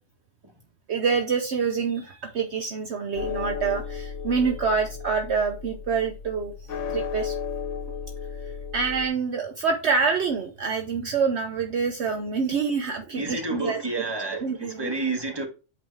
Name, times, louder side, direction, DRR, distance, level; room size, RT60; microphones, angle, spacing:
voice 1, 0.9-6.5 6.9-7.3 8.7-14.0 14.3-14.9, right 5 dB, 60° right, 1.0 m, -26 dB
sound 1, 3.2-9.1, left 6 dB, 70° left, 1.2 m, -34 dB
voice 2, 13.1-15.5, right 2 dB, 20° right, 1.6 m, -30 dB
8.5 x 3.3 x 4.5 m
omnidirectional pair, 1.3 m